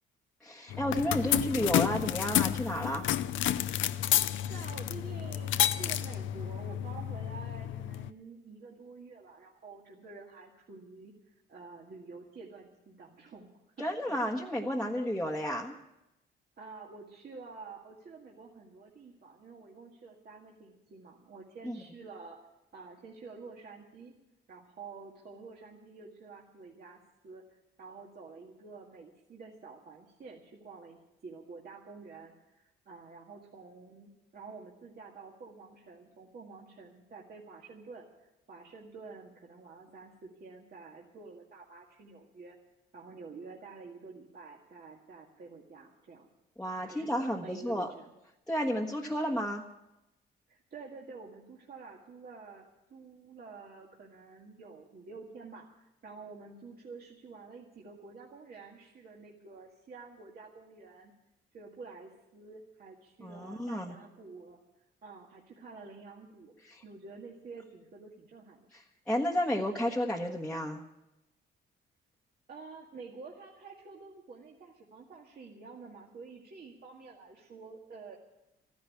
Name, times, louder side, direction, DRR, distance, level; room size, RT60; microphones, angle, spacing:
voice 1, 0.4-3.1 13.8-15.7 21.6-21.8 46.6-47.9 48.5-49.6 63.2-63.9 66.6-66.8 69.1-70.8, equal, 5° left, -3 dB, 1.3 m, -32 dB
sound 1, 0.7-8.1, left 12 dB, 75° left, 0.6 m, -30 dB
voice 2, 3.9-13.5 13.8-14.2 16.6-22.4 22.7-24.1 24.5-42.6 42.9-46.3 46.8-48.1 50.5-61.1 61.5-64.6 65.0-68.7 72.5-78.2, right 4 dB, 50° right, -2 dB, 2.0 m, -49 dB
13.5 x 10.5 x 8.6 m, 0.93 s
cardioid pair, 90°, 20 cm